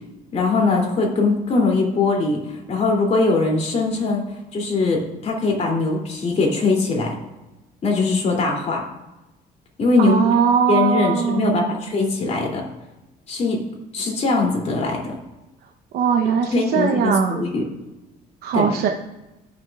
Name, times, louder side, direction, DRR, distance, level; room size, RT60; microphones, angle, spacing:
voice 1, 0.3-4.2 4.5-7.2 7.8-8.8 9.8-10.2 10.7-12.6 13.3-13.6 13.9-15.1 16.5-17.6 18.5-18.7, left 3 dB, 40° left, -1 dB, 2.8 m, -21 dB
voice 2, 10.0-11.8 15.9-17.4 18.4-18.9, right 7 dB, 70° right, 3 dB, 0.8 m, -20 dB
15.5 x 6.3 x 2.4 m, 1.0 s
cardioid pair, 110°, 17 cm